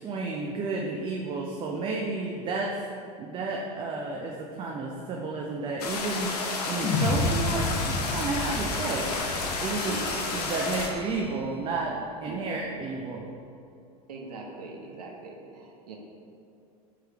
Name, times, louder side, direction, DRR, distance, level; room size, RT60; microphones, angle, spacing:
voice 1, 0.0-2.8 3.2-9.1 9.6-9.9 10.3-13.3, right 3 dB, 25° right, -1 dB, 0.3 m, -32 dB
sound 1, 5.8-10.9, left 3 dB, 85° left, 0.5 m, -31 dB
sound 2, 6.8-11.2, left 3 dB, 35° left, 0.6 m, -31 dB
Bell, 9.6-11.9, right 2 dB, 55° right, 1.0 m, -46 dB
voice 2, 9.8-10.5 12.3-12.5 14.1-16.0, right 3 dB, 80° right, 0 dB, 0.6 m, -41 dB
3.3 x 3.1 x 3.4 m, 2.5 s
hypercardioid pair, 90°, 20 cm